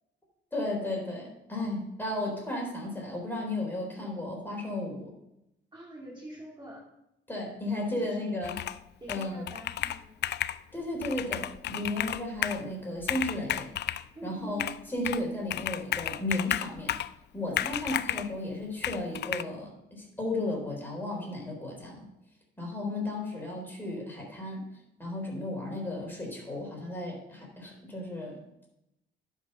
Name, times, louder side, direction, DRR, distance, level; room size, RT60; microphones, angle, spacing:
voice 1, 0.5-5.1 7.3-8.6 9.1-9.5 10.7-13.7 14.2-14.6 14.9-17.0 17.3-22.1 22.6-24.6 25.0-28.7, left 1 dB, 10° left, -1 dB, 3.8 m, -34 dB
voice 2, 5.7-6.9 8.0-8.2 9.0-10.1 14.1-14.7 17.4-17.8, right 1 dB, 25° right, -3 dB, 2.6 m, -45 dB
Computer keyboard, 8.4-8.8 9.1-10.6 11.0-12.6 13.0-14.0 14.6-15.2 15.5-17.1 17.6-18.3 18.8-19.4, left 12 dB, 60° left, 0.4 m, -32 dB
11.0 x 5.2 x 5.5 m, 0.86 s
cardioid pair, 90°, 20 cm